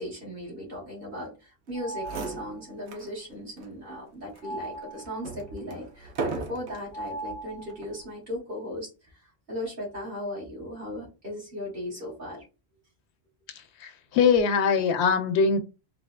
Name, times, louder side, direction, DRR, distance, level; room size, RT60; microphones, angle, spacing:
voice 1, 0.0-8.9 9.5-12.4, left 1 dB, 55° right, 2.3 m, -37 dB
sound 1, 1.7-2.7 4.4-5.4 6.9-8.0, right 2 dB, 60° left, 0.7 m, -39 dB
sound 2, 1.7-1.8 2.0-3.1 3.6-3.7 4.3-6.9 7.7-8.1, right 4 dB, 85° right, 1.1 m, -37 dB
voice 2, 13.8-15.6, left 5 dB, 85° left, 0.9 m, -22 dB
4.0 x 2.6 x 2.3 m
omnidirectional pair, 1.1 m